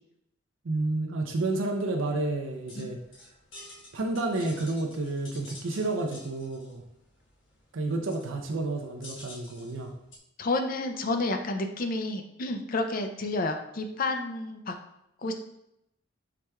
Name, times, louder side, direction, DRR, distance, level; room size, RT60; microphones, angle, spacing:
voice 1, 0.6-3.0 3.9-6.8 7.7-9.9, right 2 dB, 80° right, 2 dB, 0.5 m, -30 dB
sound 1, 2.4-10.2, left 2 dB, 75° left, 1.2 m, -50 dB
voice 2, 10.4-14.7 15.2-15.3, left 2 dB, 45° left, 5 dB, 0.5 m, -30 dB
4.8 x 4.3 x 2.3 m, 0.80 s
head